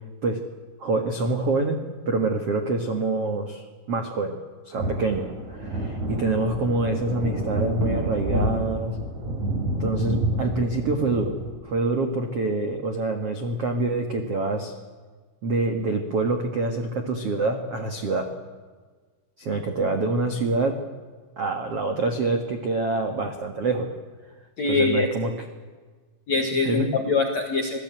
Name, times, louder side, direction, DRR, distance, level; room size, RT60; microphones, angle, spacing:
voice 1, 0.8-4.4 4.6-9.0 9.8-11.3 11.6-14.7 15.4-18.3 19.4-20.7 21.4-23.9 24.6-25.3 26.5-26.9, right 3 dB, 80° right, 5 dB, 1.3 m, -26 dB
sound 1, 4.8-11.5, right 1 dB, 40° right, 5.4 m, -29 dB
voice 2, 24.6-25.1 26.3-27.8, left 3 dB, 65° left, 3 dB, 1.7 m, -23 dB
27.0 x 17.5 x 9.1 m, 1.4 s
omnidirectional pair, 5.7 m